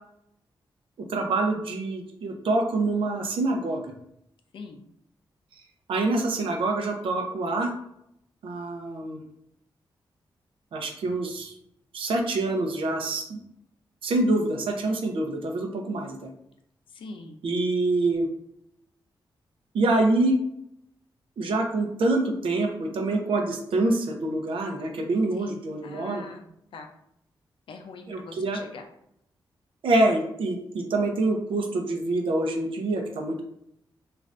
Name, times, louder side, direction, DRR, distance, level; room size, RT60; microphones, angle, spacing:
voice 1, 1.1-3.9 5.9-7.7 8.4-9.2 10.7-11.5 11.9-13.4 14.0-16.3 17.4-18.3 19.7-20.4 21.4-26.2 28.1-28.6 29.8-33.4, right 2 dB, 85° right, 3 dB, 0.6 m, -26 dB
voice 2, 4.5-4.9 16.9-17.4 25.3-26.9 27.7-28.9, left 4 dB, 75° left, 5 dB, 0.4 m, -43 dB
3.2 x 2.5 x 2.5 m, 0.76 s
wide cardioid pair, 170°, 9 cm